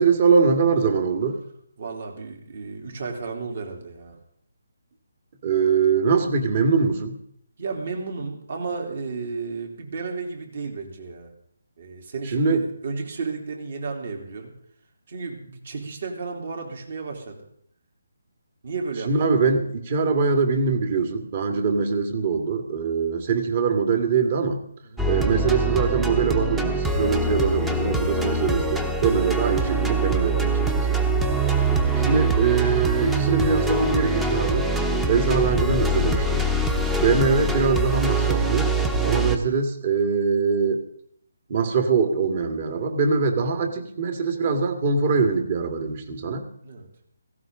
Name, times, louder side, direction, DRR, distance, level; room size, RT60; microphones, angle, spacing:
voice 1, 0.0-1.4 5.4-7.2 12.3-12.6 19.1-24.6 25.1-31.0 32.0-34.7 35.1-36.4 37.0-38.7 39.0-40.8 41.5-46.5, right 5 dB, 40° right, 6 dB, 1.9 m, -22 dB
voice 2, 1.8-4.2 7.6-11.3 11.8-14.5 15.1-17.4 18.6-19.5 21.5-21.8 24.8-25.1 31.2-31.4 43.5-43.6 46.6-46.9, right 4 dB, 55° right, 2 dB, 3.2 m, -33 dB
sound 1, 25.0-39.4, right 2 dB, 5° right, 0.9 m, -23 dB
17.0 x 16.0 x 3.8 m, 0.68 s
hypercardioid pair, 160°, 0 cm